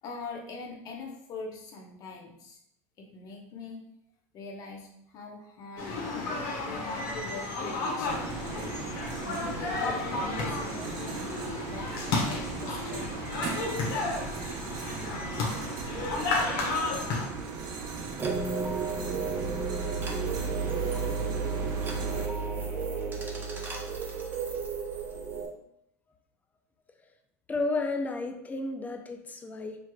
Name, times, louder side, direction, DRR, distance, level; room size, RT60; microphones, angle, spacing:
voice 1, 0.0-2.6 3.0-3.8 4.3-6.0 6.6-8.6 9.2-11.3 11.7-13.3, left 3 dB, 45° left, 0 dB, 1.1 m, -43 dB
sound 1, 5.8-17.3, left 3 dB, 65° left, 1.2 m, -32 dB
sound 2, 8.0-22.3, right 4 dB, 50° right, 0.9 m, -38 dB
sound 3, 18.2-25.5, right 5 dB, 20° right, 1.0 m, -32 dB
voice 2, 22.6-23.0 27.5-29.8, left 3 dB, 20° left, 6 dB, 0.5 m, -33 dB
5.6 x 3.2 x 2.3 m, 0.75 s
supercardioid pair, 120°, 9 cm